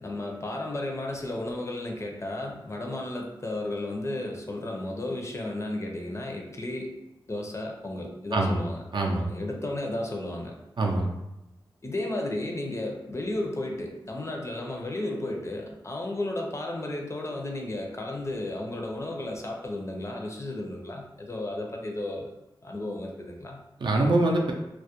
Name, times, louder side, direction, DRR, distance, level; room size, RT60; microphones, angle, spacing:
voice 1, 0.0-6.9 7.3-8.8 9.3-10.5 11.8-22.3 22.6-23.6, left 1 dB, 35° left, 1 dB, 0.5 m, -33 dB
voice 2, 8.9-9.3 10.8-11.1 23.8-24.5, right 2 dB, 60° right, 1 dB, 0.4 m, -24 dB
2.3 x 2.0 x 2.8 m, 0.93 s
cardioid pair, 55°, 9 cm